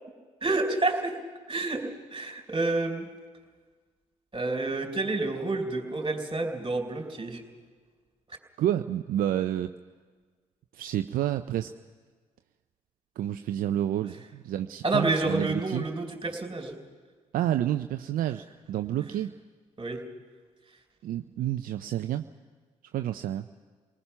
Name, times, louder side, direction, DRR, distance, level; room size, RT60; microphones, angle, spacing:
voice 1, 0.4-1.1 1.5-1.8 2.1-3.1 4.3-7.4 14.8-16.8 19.8-20.0, right 2 dB, 30° right, 3 dB, 4.1 m, -29 dB
voice 2, 8.6-9.7 10.7-11.7 13.2-15.9 17.3-19.3 21.0-22.2 22.9-23.5, right 11 dB, 65° right, 9 dB, 0.6 m, -29 dB
29.0 x 19.0 x 5.8 m, 1.5 s
hypercardioid pair, 50°, 16 cm